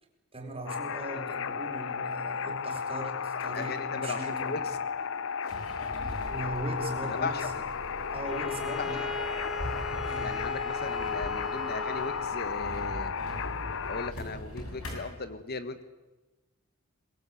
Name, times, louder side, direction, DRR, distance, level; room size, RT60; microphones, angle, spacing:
voice 1, 0.3-4.5 6.3-7.5 8.1-9.1 10.0-10.4, right 1 dB, 25° right, 3 dB, 4.7 m, -38 dB
sound 1, 0.7-14.1, left 6 dB, 65° left, 0.8 m, -34 dB
sound 2, 2.1-2.2 2.8-2.9 3.2-3.8 4.1-5.1 5.4-15.0, equal, 80° left, 6.6 m, -42 dB
voice 2, 3.5-4.8 7.0-7.5 8.8-9.0 10.2-13.1 13.9-15.8, left 3 dB, 50° left, 11 dB, 1.4 m, -37 dB
Bowed string instrument, 8.2-12.5, equal, ahead, 1.0 m, -40 dB
23.5 x 21.0 x 8.5 m, 1.1 s
head